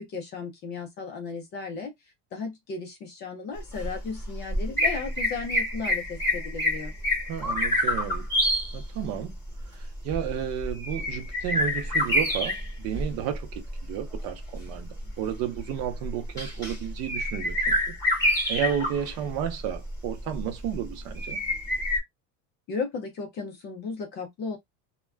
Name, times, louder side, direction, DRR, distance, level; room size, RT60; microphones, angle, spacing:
voice 1, 0.0-1.9 2.3-6.9 22.7-24.6, left 4 dB, 30° left, 0.4 m, -35 dB
sound 1, 3.6-22.0, left 1 dB, 10° left, 0.9 m, -28 dB
voice 2, 7.3-8.3 8.7-9.3 9.7-14.9 15.2-21.4, right 9 dB, 45° right, 0.6 m, -32 dB
2.3 x 2.2 x 3.3 m
cardioid pair, 175°, 37 cm